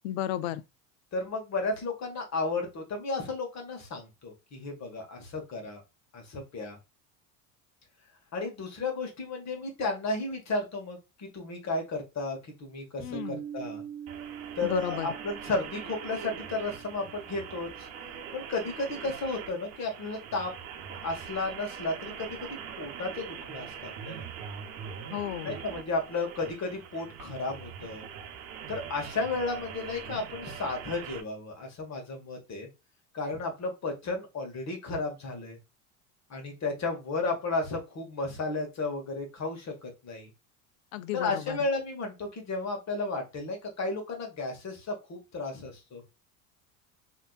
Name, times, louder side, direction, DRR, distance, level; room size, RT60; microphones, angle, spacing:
voice 1, 0.0-0.6 13.0-13.4 14.6-15.1 25.1-25.6 40.9-41.6, left 12 dB, 75° left, 0.5 m, -33 dB
voice 2, 1.1-5.8 6.1-6.8 8.3-13.8 14.5-17.9 18.3-20.5 20.9-24.3 25.4-28.1 28.7-32.7 33.1-35.6 36.3-40.3 41.1-46.0, left 3 dB, 40° left, 1.6 m, -33 dB
Piano, 13.1-18.5, right 9 dB, 45° right, 0.6 m, -44 dB
sound 1, 14.1-31.2, right 7 dB, 75° right, 0.8 m, -42 dB
3.3 x 3.0 x 2.4 m
hypercardioid pair, 85°, 42 cm